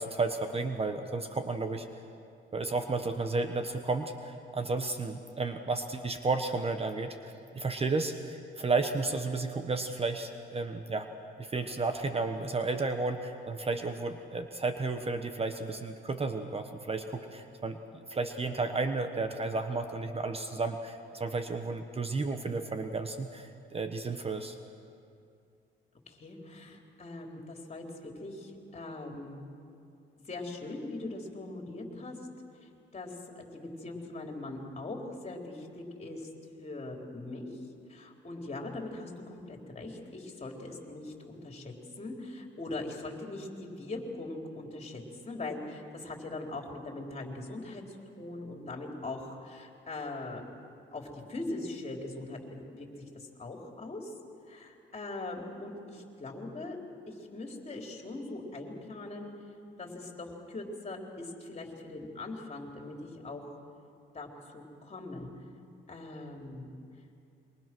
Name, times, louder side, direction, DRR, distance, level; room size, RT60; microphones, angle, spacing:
voice 1, 0.0-1.9 2.5-11.1 11.4-17.8 18.1-24.6, right 3 dB, 30° right, 7 dB, 1.3 m, -32 dB
voice 2, 26.1-27.8 28.2-29.4 30.3-32.2 32.9-36.3 36.6-37.5 37.9-47.8 48.2-50.4 50.9-52.4 52.7-52.9 53.1-54.1 54.5-56.8 57.1-59.3 59.8-63.6 64.1-64.3 64.5-65.3 65.9-66.8, left 2 dB, 35° left, 1 dB, 4.2 m, -41 dB
27.5 x 23.5 x 6.3 m, 2.5 s
cardioid pair, 90°, 20 cm